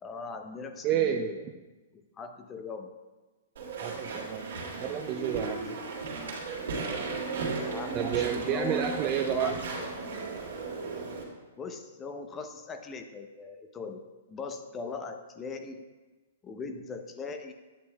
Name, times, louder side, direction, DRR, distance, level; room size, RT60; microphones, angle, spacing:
voice 1, 0.0-1.4 1.9-2.9 7.6-10.3 11.6-14.0 14.3-15.8 16.4-17.5, left 4 dB, 20° left, 6 dB, 0.7 m, -40 dB
voice 2, 0.8-1.3 3.8-5.8 7.9-9.6, right 9 dB, 35° right, 4 dB, 0.4 m, -30 dB
Walk footsteps / Chatter / Squeak, 3.6-11.2, right 3 dB, 70° right, 2.4 m, -35 dB
9.5 x 8.1 x 2.3 m, 1.2 s
hypercardioid pair, 120°, 0 cm